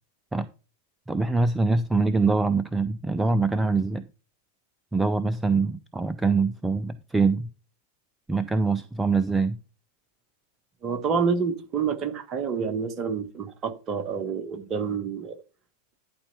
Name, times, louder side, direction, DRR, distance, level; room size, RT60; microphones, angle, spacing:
voice 1, 1.1-4.1 4.9-7.5 8.3-9.6, right 3 dB, 10° right, 0.5 m, -24 dB
voice 2, 10.8-15.4, right 6 dB, 30° right, 1.2 m, -28 dB
11.0 x 4.3 x 5.6 m
figure-of-eight pair, 90°, 0 cm